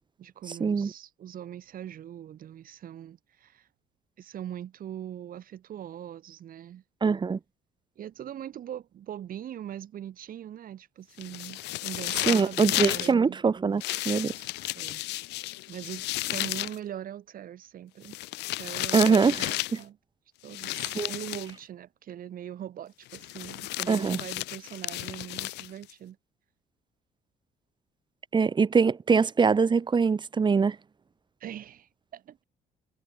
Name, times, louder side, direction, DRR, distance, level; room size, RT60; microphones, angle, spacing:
voice 1, 0.2-3.7 4.2-6.8 7.9-13.4 14.7-15.0 15.3-18.2 18.5-20.0 20.4-26.2 31.4-32.4, right 10 dB, 55° right, 5.0 m, -41 dB
voice 2, 7.0-7.4 12.3-14.3 18.9-19.5 20.9-21.1 23.9-24.2 28.3-30.8, right 5 dB, 25° right, 1.4 m, -23 dB
sound 1, 11.2-13.1 13.8-16.8 18.0-19.8 20.5-21.5 23.1-25.9, left 19 dB, 90° left, 5.8 m, -33 dB
cardioid pair, 110°, 17 cm